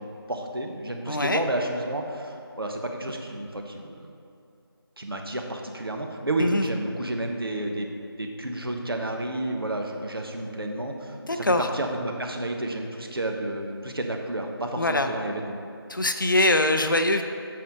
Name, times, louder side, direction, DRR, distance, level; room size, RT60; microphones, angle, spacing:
voice 1, 0.0-4.1 5.0-7.9 8.2-15.6, right 1 dB, 65° right, 2 dB, 1.1 m, -31 dB
voice 2, 1.1-1.4 6.4-6.7 11.2-11.7 14.8-15.1 15.9-17.2, left 2 dB, 55° left, 6 dB, 0.6 m, -23 dB
8.7 x 5.5 x 5.5 m, 2.5 s
figure-of-eight pair, 170°, 13 cm